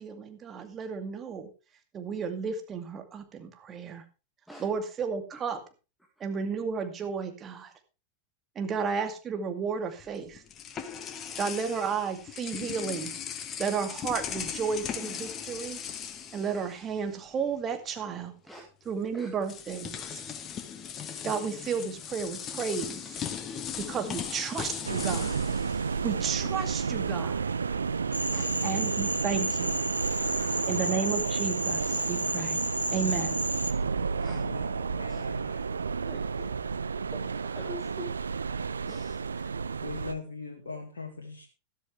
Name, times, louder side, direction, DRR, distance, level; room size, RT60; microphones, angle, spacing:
voice 1, 0.0-1.5 1.9-4.0 4.6-5.6 6.2-7.7 8.6-10.4 11.4-13.1 13.6-15.8 16.3-18.3 18.9-20.0 21.2-23.2 23.9-25.4 26.0-27.5 28.6-29.7 30.7-32.6 32.9-33.4, right 6 dB, 25° right, 2.2 m, -33 dB
sound 1, 10.0-17.3 17.5-17.7 18.9-19.0 19.4-26.6, left 8 dB, 30° left, 1.4 m, -38 dB
sound 2, 24.8-40.1, right 5 dB, 75° right, 0.5 m, -31 dB
Cricket / Frog, 28.1-33.7, equal, 90° right, 1.1 m, -32 dB
voice 2, 30.1-30.7 34.2-34.6 35.1-35.2 36.1-36.5 37.1-38.1 38.8-39.5, equal, ahead, 2.0 m, -46 dB
voice 3, 34.3-35.8 39.8-41.5, left 4 dB, 70° left, 2.0 m, -41 dB
13.0 x 12.5 x 3.3 m
figure-of-eight pair, 90°, 0 cm